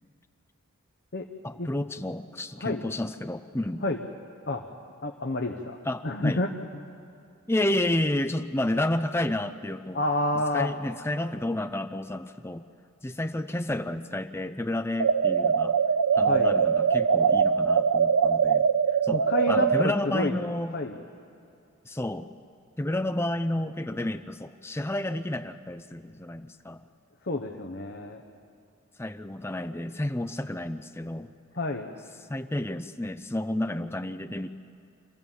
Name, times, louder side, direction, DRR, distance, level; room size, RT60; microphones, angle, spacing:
voice 1, 1.4-3.8 5.9-6.4 7.5-10.0 10.5-12.6 13.0-15.8 16.1-18.7 19.0-19.2 19.5-20.8 21.8-22.3 22.8-26.8 29.0-31.3 32.3-34.5, left 1 dB, 10° left, 10 dB, 0.5 m, -30 dB
voice 2, 5.0-5.8 6.0-6.5 9.9-10.7 16.2-16.5 19.1-20.4 20.7-21.0 27.2-28.2 31.6-31.9, left 2 dB, 50° left, 2 dB, 1.0 m, -29 dB
sound 1, 15.0-19.9, right 6 dB, 85° right, 0.5 m, -22 dB
26.5 x 15.0 x 7.3 m, 2.6 s
head